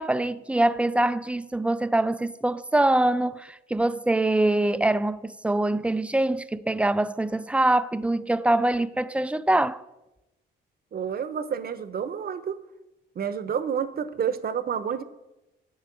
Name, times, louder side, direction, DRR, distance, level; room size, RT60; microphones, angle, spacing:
voice 1, 0.0-9.8, right 1 dB, 5° right, 0.5 m, -24 dB
voice 2, 10.9-12.6 13.1-15.0, right 7 dB, 50° right, 1.0 m, -29 dB
10.0 x 8.0 x 7.5 m
cardioid pair, 90°, 20 cm